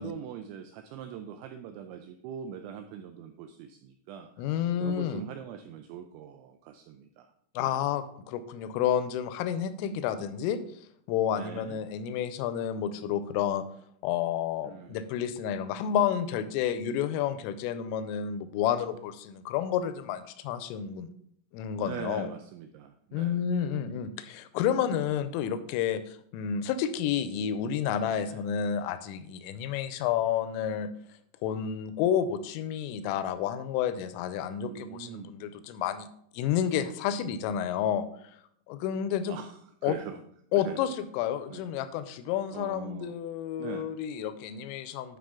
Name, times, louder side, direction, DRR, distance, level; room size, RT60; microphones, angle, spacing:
voice 1, 0.0-7.3 7.6-7.8 9.8-10.4 11.3-11.8 14.6-15.1 21.8-23.5 23.9-24.1 28.2-28.4 34.5-35.3 39.3-40.2 40.5-40.8 41.5-41.7 42.5-43.2 43.6-43.9, right 8 dB, 90° right, 7 dB, 2.6 m, -42 dB
voice 2, 4.4-5.2 7.6-10.6 11.1-13.6 14.0-21.1 21.5-22.3 23.1-30.9 31.4-36.1 36.3-38.1 38.7-39.4 39.8-40.0 40.5-45.2, left 9 dB, 85° left, 12 dB, 3.2 m, -30 dB
11.5 x 5.5 x 3.7 m, 0.68 s
omnidirectional pair, 5.8 m